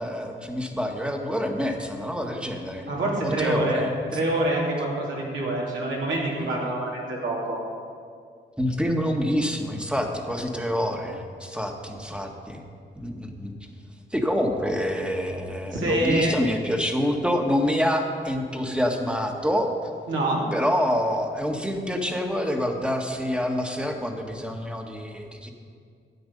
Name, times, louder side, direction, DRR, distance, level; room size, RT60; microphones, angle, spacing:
voice 1, 0.0-2.9 3.2-3.9 8.6-12.6 12.9-13.5 14.1-19.7 20.5-25.5, equal, 5° right, 3 dB, 1.5 m, -27 dB
voice 2, 2.9-3.8 4.1-7.6 15.7-16.3 20.1-20.4, right 1 dB, 75° right, -4 dB, 2.8 m, -26 dB
12.5 x 8.7 x 5.3 m, 2.2 s
cardioid pair, 60°, 20 cm